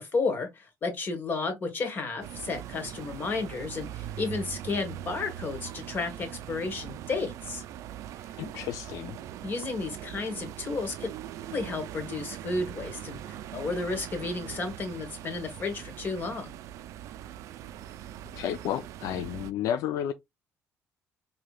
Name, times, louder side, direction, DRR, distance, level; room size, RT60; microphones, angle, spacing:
voice 1, 0.0-7.6 9.4-11.1 11.5-16.5, left 3 dB, 35° left, 1.4 m, -32 dB
sound 1, 2.2-19.5, right 11 dB, 75° right, 0.3 m, -41 dB
voice 2, 8.4-9.2 18.3-20.1, left 10 dB, 85° left, 0.4 m, -32 dB
4.7 x 2.8 x 2.3 m
cardioid pair, 140°, 5 cm